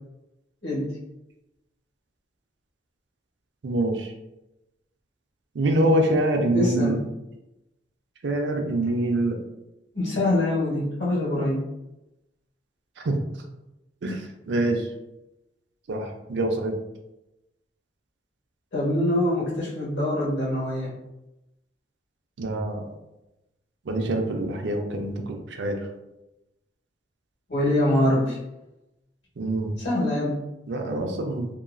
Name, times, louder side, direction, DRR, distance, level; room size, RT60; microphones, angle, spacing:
voice 1, 3.6-4.1 5.5-7.0 8.2-9.4 13.0-13.2 14.0-14.9 15.9-16.8 22.4-22.9 23.9-25.8 29.4-29.7 30.7-31.5, right 1 dB, 80° right, 4 dB, 0.5 m, -25 dB
voice 2, 6.5-7.0 9.9-11.6 18.7-20.9 27.5-28.4 29.8-30.4, left 1 dB, 85° left, -7 dB, 1.3 m, -24 dB
2.8 x 2.3 x 2.5 m, 0.94 s
head